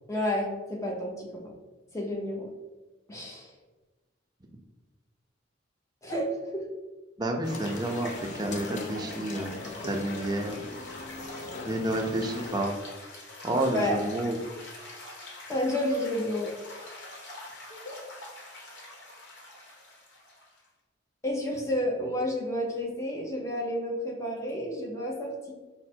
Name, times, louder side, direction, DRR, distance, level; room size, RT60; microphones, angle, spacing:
voice 1, 0.1-1.3 1.9-2.5 3.1-3.5 6.0-6.6 13.7-14.0 15.5-16.5 21.2-25.5, left 1 dB, 15° left, -1 dB, 0.7 m, -30 dB
voice 2, 7.2-10.6 11.6-12.8 13.4-14.3, right 1 dB, 20° right, 2 dB, 0.5 m, -30 dB
sound 1, 7.4-20.7, left 2 dB, 65° left, 1.1 m, -45 dB
sound 2, 7.4-12.6, left 3 dB, 40° left, 0.3 m, -41 dB
4.8 x 2.1 x 4.3 m, 1.2 s
head